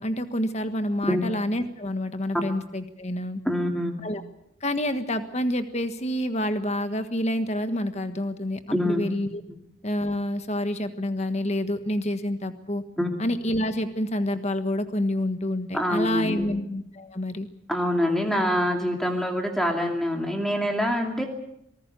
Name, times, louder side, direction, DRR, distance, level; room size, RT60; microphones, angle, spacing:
voice 1, 0.0-3.4 4.0-4.2 4.6-9.4 9.8-12.8 13.2-17.5, left 1 dB, 30° left, 9 dB, 1.5 m, -28 dB
voice 2, 3.4-4.0 8.7-9.0 13.0-13.2 15.7-16.5 17.7-21.3, equal, ahead, 2 dB, 2.5 m, -25 dB
26.0 x 19.5 x 6.9 m, 0.77 s
head